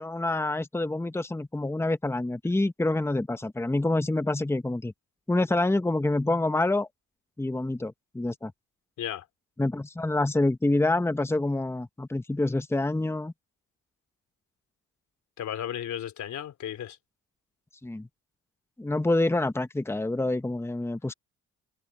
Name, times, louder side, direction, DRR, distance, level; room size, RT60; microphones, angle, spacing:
voice 1, 0.0-4.9 5.3-6.9 7.4-8.5 9.6-13.3 17.8-18.1 18.8-21.1, left 2 dB, 10° left, 1.2 m, -27 dB
voice 2, 15.4-17.0, left 10 dB, 70° left, 3.3 m, -34 dB
cardioid pair, 85°, 30 cm